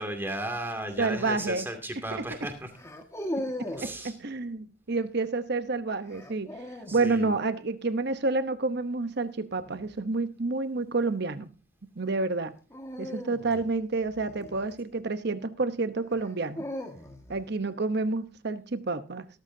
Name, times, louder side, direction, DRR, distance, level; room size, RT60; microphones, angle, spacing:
voice 1, 0.0-2.7 3.8-4.2 6.9-7.4, right 1 dB, 10° right, 2.5 m, -35 dB
sound 1, 0.9-1.2 2.7-4.0 6.1-7.1 9.5-9.9 12.7-15.1 16.1-17.4, left 1 dB, 15° left, 1.7 m, -38 dB
voice 2, 1.0-1.7 2.1-2.2 3.6-6.6 6.9-11.5 12.0-12.5 13.0-16.6 17.3-19.3, right 3 dB, 55° right, 0.9 m, -29 dB
16.0 x 13.5 x 2.8 m
head